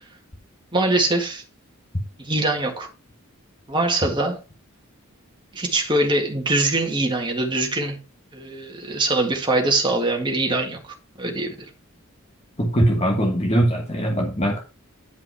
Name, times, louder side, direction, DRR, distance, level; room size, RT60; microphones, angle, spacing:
voice 1, 0.7-1.4 2.2-2.9 3.7-4.4 5.5-8.0 8.3-10.8 11.2-11.6, right 2 dB, 20° right, 1.8 m, -23 dB
voice 2, 12.6-14.6, right 1 dB, 30° left, 1.4 m, -21 dB
10.0 x 5.4 x 4.6 m
head